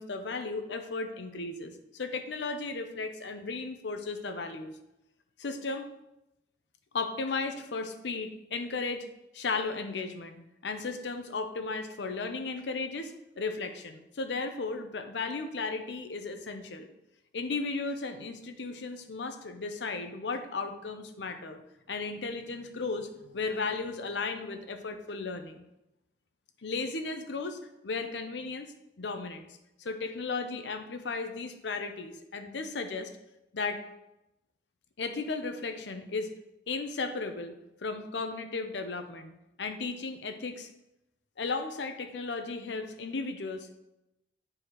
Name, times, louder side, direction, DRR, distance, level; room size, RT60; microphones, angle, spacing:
voice 1, 0.0-4.7 5.4-5.9 6.9-9.1 9.3-16.9 17.3-21.6 21.9-25.6 26.6-28.7 29.0-29.5 29.8-33.1 33.5-33.8 35.0-36.3 36.7-37.6 37.8-40.7 41.4-43.8, left 4 dB, 75° left, 8 dB, 0.7 m, -35 dB
8.6 x 4.7 x 3.0 m, 0.90 s
head